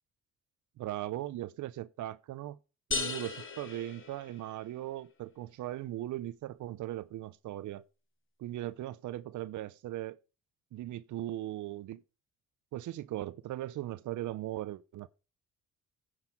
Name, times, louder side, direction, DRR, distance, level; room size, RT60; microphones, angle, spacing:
voice 1, 0.8-2.6 2.9-7.8 8.4-10.2 10.7-12.0 12.7-15.1, right 14 dB, 75° right, 0.7 m, -38 dB
sound 1, 2.9-4.8, left 4 dB, 40° left, 2.3 m, -37 dB
9.7 x 6.5 x 5.3 m
cardioid pair, 90°, 30 cm